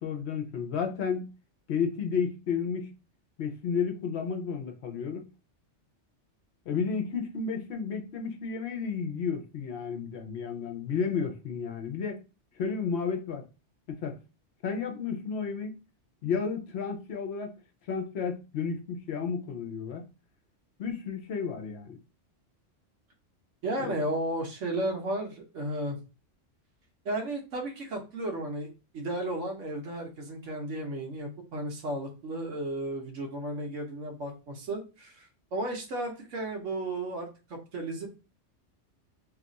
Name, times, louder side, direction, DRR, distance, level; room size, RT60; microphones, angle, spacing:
voice 1, 0.0-1.3 1.7-2.9 3.4-5.2 6.7-12.2 12.6-13.4 13.9-14.2 14.6-15.7 16.2-17.5 17.9-20.0 20.8-22.0 23.8-23.9, left 6 dB, 65° left, 0.9 m, -32 dB
voice 2, 23.6-26.0 27.0-28.7 28.9-38.1, right 1 dB, 75° right, 1.2 m, -34 dB
2.9 x 2.4 x 3.9 m
omnidirectional pair, 1.3 m